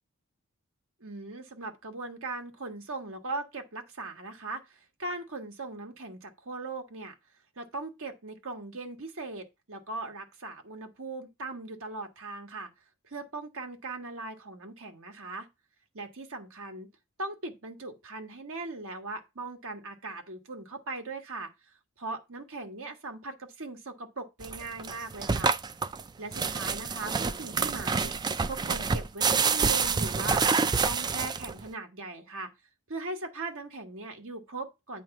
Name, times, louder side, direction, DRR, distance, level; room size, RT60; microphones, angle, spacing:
voice 1, 1.0-7.1 7.6-12.7 13.1-15.5 15.9-16.9 17.2-21.5 22.0-25.5 26.2-30.5 30.8-32.5 32.9-35.0, right 2 dB, 65° right, 1.2 m, -39 dB
sound 1, 24.4-31.7, right 5 dB, 20° right, 0.3 m, -27 dB
8.9 x 3.2 x 5.6 m
head